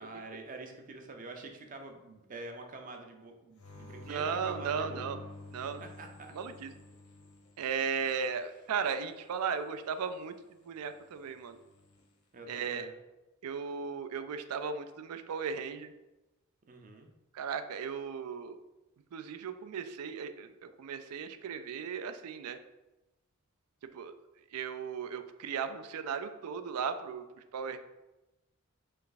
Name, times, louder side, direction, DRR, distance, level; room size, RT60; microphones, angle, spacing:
voice 1, 0.0-5.2 5.8-6.3 12.3-12.9 16.7-17.1, right 3 dB, 35° right, 4 dB, 0.5 m, -46 dB
sound 1, 3.6-8.2 11.5-12.0, left 2 dB, 75° left, 0.8 m, -49 dB
voice 2, 4.1-5.2 5.5-5.8 6.3-6.7 7.6-10.3 10.7-11.6 12.5-12.9 13.4-15.9 17.3-18.6 19.1-22.6 23.9-24.1 24.5-27.2 27.5-27.8, right 6 dB, 90° right, 10 dB, 0.4 m, -36 dB
3.4 x 3.3 x 3.9 m, 1.0 s
head